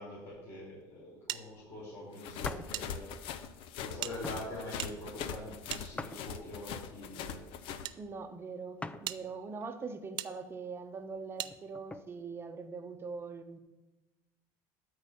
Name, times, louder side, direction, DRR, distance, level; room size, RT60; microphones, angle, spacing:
voice 1, 0.0-3.4 3.8-7.4, left 1 dB, 25° left, -7 dB, 4.5 m, -44 dB
sound 1, 1.3-2.9 3.1-3.2 4.0-6.4 7.2-8.0 8.5-8.6 9.0-9.2 10.2-10.3 11.4-11.5, right 13 dB, 50° right, 0.5 m, -41 dB
sound 2, 2.2-7.9, left 8 dB, 65° left, 0.8 m, -41 dB
sound 3, 2.4-2.7 3.3-3.5 4.2-4.5 6.0-6.7 8.8-9.1 9.6-9.7 11.4-12.1, left 3 dB, 10° left, 0.4 m, -43 dB
voice 2, 2.4-2.9 8.0-13.6, right 4 dB, 25° right, 7 dB, 1.0 m, -42 dB
13.0 x 4.9 x 7.0 m, 1.1 s
cardioid pair, 125°, 10 cm